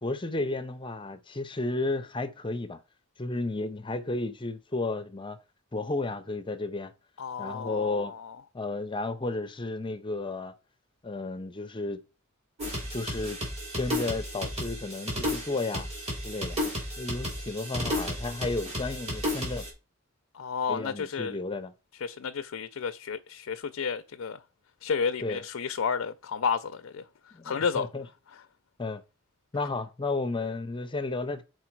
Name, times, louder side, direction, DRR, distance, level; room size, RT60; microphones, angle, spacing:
voice 1, 0.0-2.8 3.2-5.4 5.7-6.9 7.4-8.1 8.5-10.5 11.0-12.0 12.9-13.4 13.8-15.9 16.2-16.6 17.0-19.7 20.7-21.7 25.2-25.4 27.3-28.1 28.8-29.0 29.5-31.4, left 2 dB, 25° left, 0.6 m, -33 dB
voice 2, 7.2-8.4 20.3-21.4 22.0-24.4 24.8-27.0 27.4-27.9, left 6 dB, 75° left, 0.5 m, -31 dB
sound 1, 12.6-19.7, left 1 dB, 30° right, 4.2 m, -33 dB
7.1 x 4.6 x 4.6 m
head